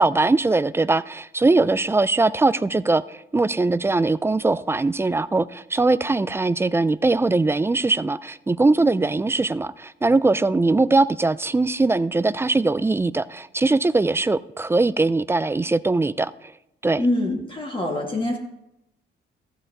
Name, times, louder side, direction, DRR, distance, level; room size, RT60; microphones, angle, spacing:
voice 1, 0.0-16.5 16.8-17.1, right 3 dB, 10° right, 0.3 m, -21 dB
voice 2, 17.0-18.4, left 1 dB, 25° left, 1.5 m, -24 dB
14.5 x 9.8 x 2.6 m
cardioid pair, 90°, 20 cm